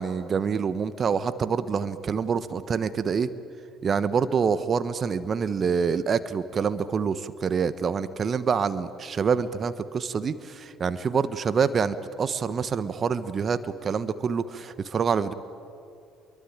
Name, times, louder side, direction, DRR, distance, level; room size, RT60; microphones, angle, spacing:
voice 1, 0.0-3.3 3.8-15.3, right 6 dB, 45° right, 13 dB, 1.2 m, -26 dB
28.0 x 23.0 x 9.0 m, 2.5 s
hypercardioid pair, 55°, 0 cm